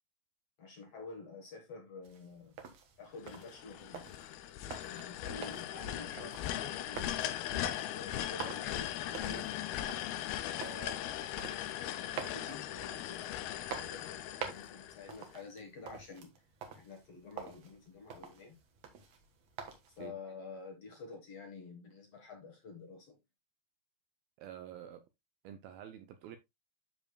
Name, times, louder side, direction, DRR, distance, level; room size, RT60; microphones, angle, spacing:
voice 1, 0.6-2.6 3.0-4.1 4.8-9.5 10.4-16.4 16.7-18.6 20.0-23.2, left 3 dB, 65° left, 1.5 m, -49 dB
sound 1, 2.0-20.1, right 7 dB, 65° right, 1.7 m, -49 dB
sound 2, 3.2-15.3, left 12 dB, 85° left, 2.2 m, -39 dB
voice 2, 24.4-25.0 25.4-26.4, right 10 dB, 85° right, 2.1 m, -48 dB
12.5 x 5.1 x 2.3 m
omnidirectional pair, 5.1 m